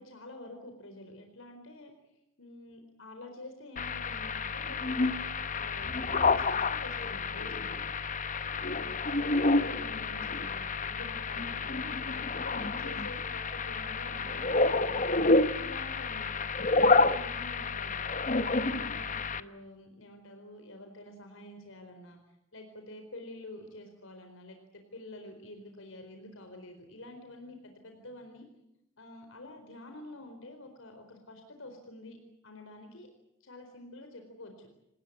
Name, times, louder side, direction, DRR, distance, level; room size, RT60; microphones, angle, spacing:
voice 1, 0.0-1.9 2.4-5.1 5.4-7.8 8.7-14.9 15.5-16.3 16.6-18.2 18.5-22.2 22.5-28.4 29.0-32.2 32.4-33.1 33.4-34.7, left 1 dB, 75° left, 5 dB, 4.4 m, -48 dB
sound 1, 3.8-19.4, left 3 dB, 40° left, 1.0 m, -29 dB
27.5 x 20.0 x 8.7 m, 0.84 s
head